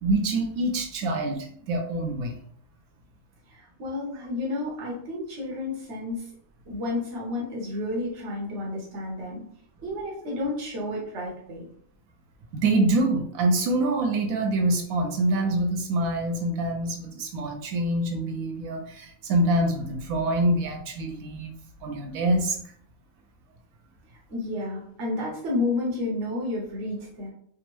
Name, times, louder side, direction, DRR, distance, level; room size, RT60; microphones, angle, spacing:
voice 1, 0.0-2.3 12.5-21.5 21.8-22.7, right 1 dB, 80° right, 4 dB, 1.1 m, -25 dB
voice 2, 3.5-6.3 6.7-9.4 9.8-11.6 24.3-27.3, left 2 dB, 60° right, -4 dB, 1.1 m, -31 dB
3.5 x 2.0 x 3.0 m, 0.62 s
omnidirectional pair, 1.5 m